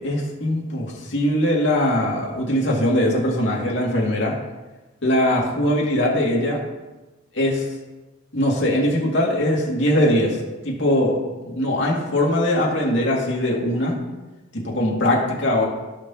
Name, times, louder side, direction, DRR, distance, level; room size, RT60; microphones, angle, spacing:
voice 1, 0.0-4.3 5.0-6.6 7.3-7.6 8.3-11.2 11.4-14.0 14.5-15.7, left 1 dB, 70° left, -3 dB, 2.3 m, -21 dB
17.0 x 5.9 x 3.0 m, 1.1 s
head